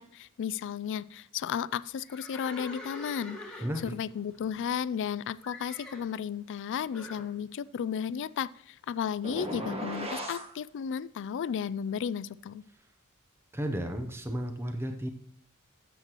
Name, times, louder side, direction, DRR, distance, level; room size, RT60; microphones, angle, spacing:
voice 1, 0.0-12.6, left 8 dB, 55° left, 18 dB, 0.3 m, -34 dB
Livestock farm animals working animals, 2.0-5.1 5.4-6.1 6.9-7.3, left 2 dB, 5° left, 1.7 m, -45 dB
voice 2, 3.6-3.9 13.5-15.1, equal, 10° right, 5 dB, 0.7 m, -33 dB
sound 1, 9.2-10.5, right 1 dB, 25° right, 1.3 m, -36 dB
13.0 x 7.7 x 3.0 m, 0.69 s
head